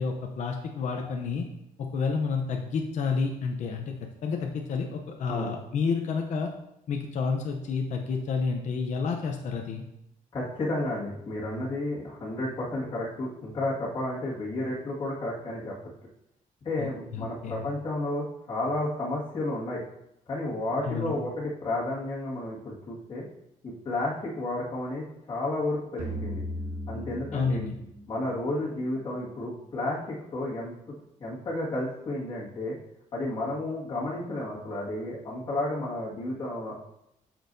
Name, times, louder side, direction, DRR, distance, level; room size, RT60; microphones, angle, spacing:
voice 1, 0.0-1.5 1.8-3.9 4.2-6.5 6.9-9.8 16.8-17.7 20.8-21.2 27.3-27.8, left 5 dB, 60° left, 2 dB, 0.7 m, -30 dB
voice 2, 10.3-15.8 16.6-19.8 20.3-23.2 23.6-26.4 26.9-27.6 28.1-30.7 31.2-32.8 33.1-36.7, left 1 dB, 35° left, -7 dB, 1.9 m, -32 dB
sound 1, 26.0-29.2, equal, 85° right, 1.7 m, -37 dB
8.3 x 6.3 x 2.7 m, 0.82 s
cardioid pair, 140°, 14 cm